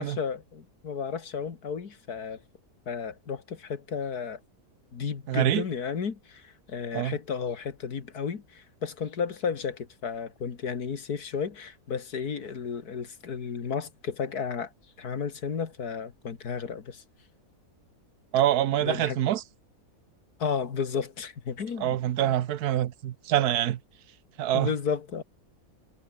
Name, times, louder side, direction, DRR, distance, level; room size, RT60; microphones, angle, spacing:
voice 1, 0.0-2.4 2.9-4.4 4.9-14.7 15.0-17.0 18.8-19.2 20.4-22.0 22.2-22.3 24.5-25.2, left 6 dB, 85° left, 2.4 m, -33 dB
voice 2, 5.3-5.7 6.9-7.2 18.3-19.4 21.8-23.8 24.4-24.7, right 12 dB, 85° right, 1.3 m, -25 dB
omnidirectional pair, 1.6 m